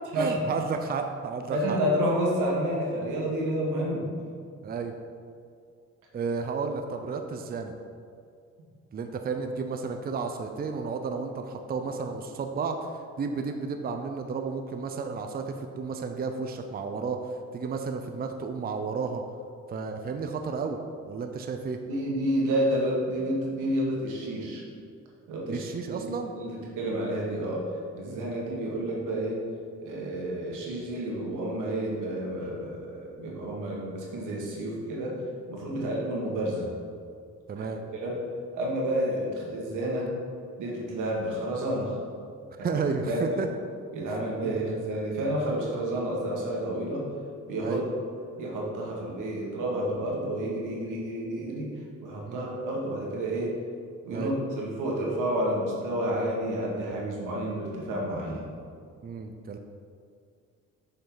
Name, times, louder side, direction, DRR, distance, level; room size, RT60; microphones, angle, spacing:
voice 1, 0.1-1.8 4.6-4.9 6.1-7.7 8.9-12.8 13.2-17.2 17.5-19.2 19.7-20.8 21.1-21.8 25.5-26.3 28.1-28.3 35.7-35.9 37.5-37.8 42.6-43.5 44.4-44.7 47.6-47.8 52.3-52.5 54.1-54.3 59.0-59.6, right 5 dB, 30° right, 5 dB, 0.5 m, -32 dB
voice 2, 1.5-4.0 21.9-24.6 25.3-27.6 27.9-29.4 29.8-35.2 35.5-36.7 37.6-38.2 38.5-40.1 40.6-42.0 42.6-42.8 43.1-43.3 43.9-47.1 47.5-47.8 48.4-51.7 52.0-53.5 54.0-58.4, right 1 dB, 90° right, -3 dB, 1.7 m, -30 dB
7.1 x 5.5 x 3.9 m, 2.3 s
cardioid pair, 90°, 30 cm